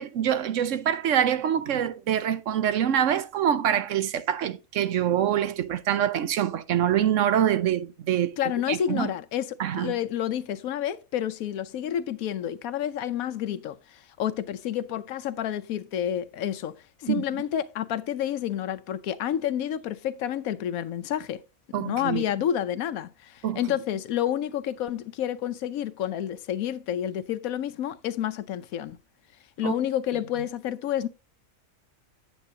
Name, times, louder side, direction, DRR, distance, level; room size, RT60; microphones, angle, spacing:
voice 1, 0.0-8.4 8.7-9.1 9.6-9.9 17.1-17.2 21.7-22.2 23.4-23.6 29.6-29.7, right 10 dB, 70° right, 1.0 m, -25 dB
voice 2, 8.4-21.4 21.8-29.0 29.6-31.1, left 10 dB, 90° left, 1.1 m, -29 dB
9.0 x 8.1 x 2.7 m
omnidirectional pair, 1.4 m